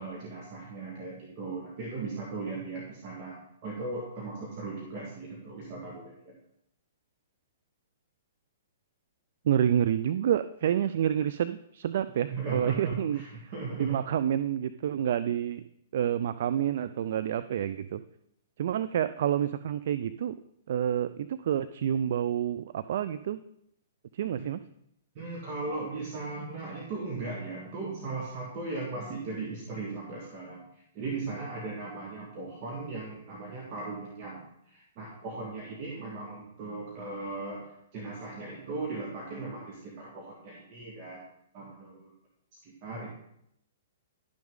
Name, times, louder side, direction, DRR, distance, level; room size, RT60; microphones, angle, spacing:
voice 1, 0.0-6.4 12.3-14.0 24.4-24.5 25.1-41.2 41.5-42.1 42.6-43.1, right 3 dB, 45° right, -2 dB, 1.7 m, -38 dB
voice 2, 9.4-13.2 13.8-15.6 15.9-18.0 18.6-20.3 20.7-23.4 24.1-24.6, right 10 dB, 60° right, 13 dB, 0.3 m, -28 dB
11.5 x 6.1 x 3.7 m, 0.75 s
hypercardioid pair, 120°, 0 cm